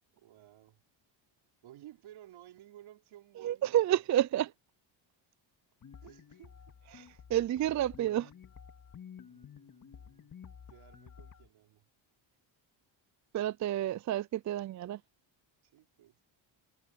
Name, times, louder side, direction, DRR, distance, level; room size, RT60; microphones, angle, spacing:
voice 1, 0.1-0.8 1.6-4.5 6.0-6.7 9.2-10.3 10.7-11.9 15.6-16.2, right 13 dB, 80° right, 4.5 m, -56 dB
voice 2, 3.4-4.5 6.9-8.3 13.3-15.0, right 12 dB, 40° right, 0.4 m, -30 dB
sound 1, 5.8-11.5, left 7 dB, 40° left, 2.4 m, -52 dB
cardioid pair, 105°, 47 cm